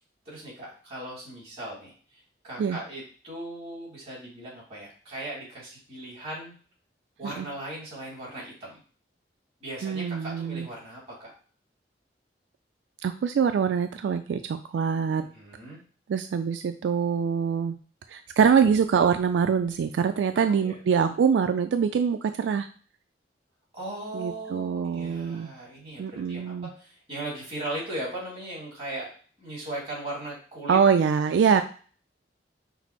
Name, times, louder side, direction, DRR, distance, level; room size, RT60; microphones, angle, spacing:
voice 1, 0.3-6.5 7.2-8.8 9.6-11.3 15.3-15.8 20.3-20.8 23.7-30.8 31.5-31.6, right 1 dB, 30° right, -4 dB, 2.2 m, -38 dB
voice 2, 9.8-10.7 13.0-15.2 16.1-17.8 18.1-22.7 24.1-25.5 26.0-26.7 30.7-31.6, right 6 dB, 80° right, 9 dB, 0.3 m, -24 dB
5.8 x 2.0 x 4.3 m, 0.41 s
head